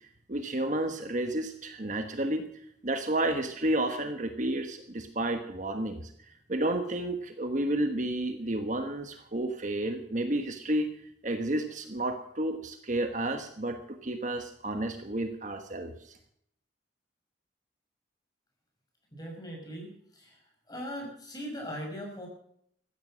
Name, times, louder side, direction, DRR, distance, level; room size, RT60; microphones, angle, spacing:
voice 1, 0.3-2.5 2.8-10.9 11.2-16.2, right 1 dB, 40° right, 6 dB, 1.2 m, -31 dB
voice 2, 19.1-20.4 20.7-22.3, equal, 20° left, 1 dB, 5.8 m, -40 dB
15.0 x 13.5 x 6.3 m, 0.68 s
head